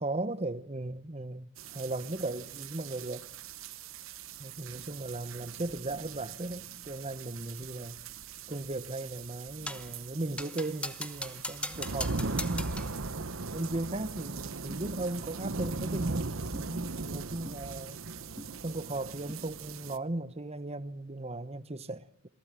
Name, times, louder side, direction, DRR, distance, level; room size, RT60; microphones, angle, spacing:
voice 1, 0.0-3.3 4.4-8.0 8.5-12.7 13.3-16.3 16.7-18.0 18.6-22.3, right 2 dB, 30° right, 1.1 m, -37 dB
sound 1, 1.6-20.0, right 3 dB, 65° right, 1.1 m, -39 dB
sound 2, 9.7-9.9 10.4-13.0, left 2 dB, 5° left, 1.0 m, -39 dB
sound 3, 14.7-14.8 15.6-15.8 16.5-16.7 17.4-17.6 18.4-18.5 19.3-19.4, equal, 15° right, 2.0 m, -44 dB
27.5 x 19.0 x 9.0 m
head